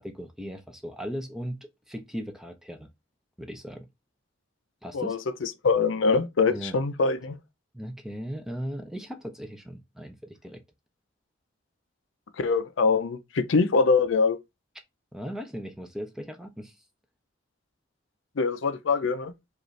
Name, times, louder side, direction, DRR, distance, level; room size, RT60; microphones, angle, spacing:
voice 1, 0.0-2.9 3.4-3.9 4.8-5.2 6.5-6.8 7.7-10.6 15.1-16.8, equal, ahead, 0.5 m, -37 dB
voice 2, 4.9-7.4 12.4-14.4 18.4-19.3, left 4 dB, 70° left, 0.5 m, -24 dB
4.9 x 2.5 x 3.2 m
head